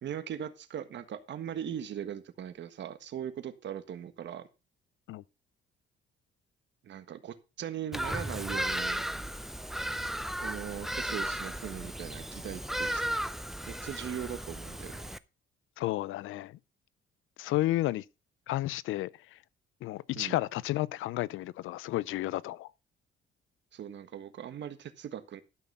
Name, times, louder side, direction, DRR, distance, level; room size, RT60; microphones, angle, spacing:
voice 1, 0.0-4.5 6.8-9.1 10.4-13.0 13.7-15.1 20.1-20.3 23.7-25.4, right 9 dB, 65° right, 1.5 m, -39 dB
Bird vocalization bird call bird song, 7.9-15.2, equal, ahead, 0.6 m, -35 dB
voice 2, 15.8-16.6 17.4-18.0 18.5-19.1 19.8-22.7, left 16 dB, 85° left, 0.5 m, -32 dB
12.5 x 6.2 x 5.4 m
cardioid pair, 90°, 20 cm